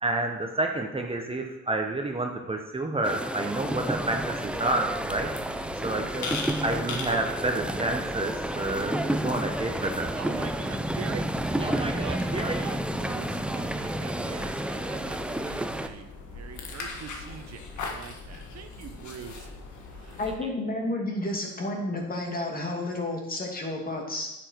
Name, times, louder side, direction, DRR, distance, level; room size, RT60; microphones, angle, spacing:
voice 1, 0.0-5.3 5.8-6.3 6.6-10.1 11.6-12.7, right 2 dB, 20° right, 2 dB, 1.1 m, -29 dB
Torino Piazza Castello, 3.0-15.9, right 1 dB, 5° right, 0.6 m, -31 dB
sound 1, 3.6-20.4, left 3 dB, 70° left, 1.7 m, -41 dB
voice 2, 10.2-19.5 19.9-20.2, right 7 dB, 60° right, 7 dB, 1.0 m, -43 dB
voice 3, 20.2-24.3, left 1 dB, 30° left, 1 dB, 2.5 m, -31 dB
9.7 x 7.2 x 4.6 m, 0.96 s
cardioid pair, 90°, 30 cm